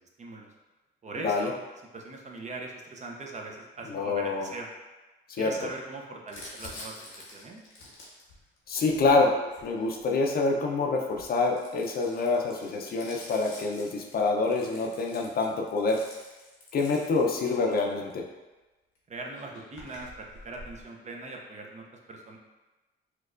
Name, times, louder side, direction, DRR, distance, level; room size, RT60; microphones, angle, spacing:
voice 1, 0.0-0.5 1.0-1.6 1.9-4.7 5.4-7.6 19.1-22.4, right 3 dB, 35° right, 1 dB, 0.5 m, -41 dB
voice 2, 3.9-4.5 5.4-5.5 8.7-9.3 9.6-16.0 16.7-18.2, left 3 dB, 50° left, 1 dB, 0.5 m, -26 dB
Crumpling crinkling, 6.3-10.3 11.0-18.1 19.0-19.1 19.2-20.8, left 2 dB, 85° left, 0.9 m, -48 dB
4.3 x 2.3 x 2.4 m, 1.1 s
cardioid pair, 90°, 20 cm